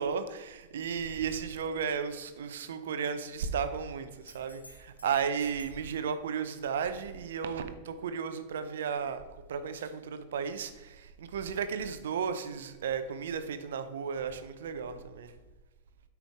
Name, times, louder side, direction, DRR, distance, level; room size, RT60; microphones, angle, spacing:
voice 1, 0.0-9.2 9.5-15.3, right 6 dB, 60° right, 10 dB, 0.7 m, -34 dB
sound 1, 4.2-5.9 9.5-9.6, left 1 dB, 85° left, 1.2 m, -55 dB
8.9 x 6.1 x 3.6 m, 1.2 s
figure-of-eight pair, 90°, 0 cm